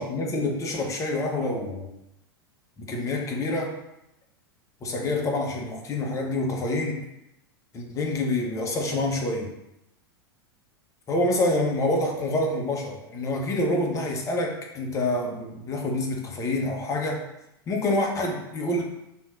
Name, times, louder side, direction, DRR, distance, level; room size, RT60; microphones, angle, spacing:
voice 1, 0.0-1.9 2.8-3.7 4.8-7.1 7.7-9.5 11.1-17.2 17.7-18.8, left 2 dB, 25° left, 1 dB, 0.8 m, -27 dB
5.3 x 2.9 x 2.4 m, 0.87 s
figure-of-eight pair, 90°, 13 cm